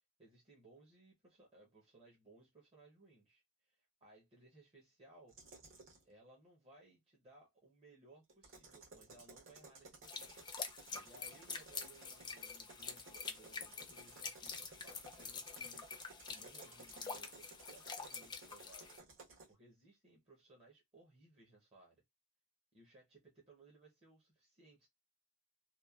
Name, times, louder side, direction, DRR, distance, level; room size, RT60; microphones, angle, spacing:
voice 1, 0.2-5.4 6.0-10.3 10.6-19.0 19.5-22.0 22.7-24.9, right 2 dB, 25° right, 0.7 m, -63 dB
sound 1, 5.3-6.0 8.3-19.5, right 3 dB, 60° right, 1.1 m, -58 dB
sound 2, 10.0-19.0, left 5 dB, 20° left, 0.4 m, -47 dB
2.9 x 2.1 x 2.2 m
head